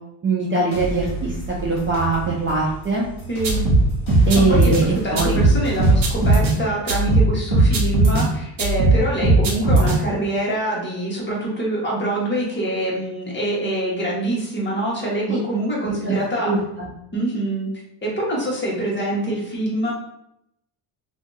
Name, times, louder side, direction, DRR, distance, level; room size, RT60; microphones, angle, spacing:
voice 1, 0.2-3.1 4.3-4.8 5.1-5.5 15.3-15.4 16.0-16.1 16.4-16.9, right 3 dB, 25° right, -4 dB, 0.5 m, -22 dB
sound 1, 0.7-6.3, right 2 dB, 50° left, 1.4 m, -31 dB
voice 2, 3.3-3.6 4.3-4.7 5.0-16.5 17.1-17.7 18.0-19.9, right 1 dB, 25° left, -4 dB, 1.2 m, -25 dB
sound 2, 3.4-4.8 5.2-6.5 6.9-8.3 8.6-10.0, right 2 dB, 45° right, 0.9 m, -17 dB
2.7 x 2.4 x 3.8 m, 0.80 s
cardioid pair, 130°, 47 cm